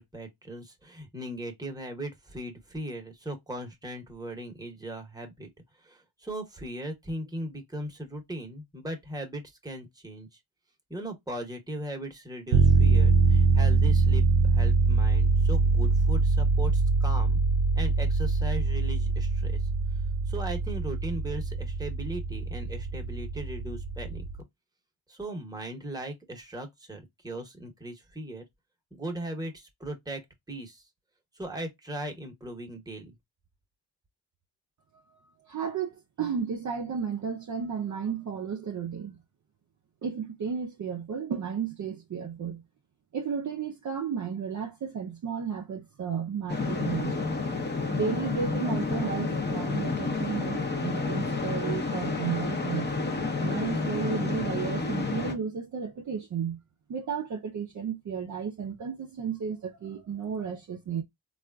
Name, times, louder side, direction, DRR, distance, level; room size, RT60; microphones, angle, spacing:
voice 1, 0.0-5.5 5.8-10.3 10.9-17.4 17.7-19.7 20.3-24.3 25.1-28.4 28.9-30.2 30.5-30.8 31.3-33.1, right 1 dB, 10° right, 1.0 m, -38 dB
sound 1, 12.5-24.4, right 4 dB, 85° right, 0.6 m, -24 dB
voice 2, 35.5-39.2 40.0-42.6 43.1-47.3 47.9-52.9 53.4-56.6 56.9-61.0, right 6 dB, 40° right, 0.5 m, -33 dB
sound 2, 46.5-55.3, left 3 dB, 20° left, 0.7 m, -30 dB
3.3 x 2.4 x 2.2 m
cardioid pair, 75°, 49 cm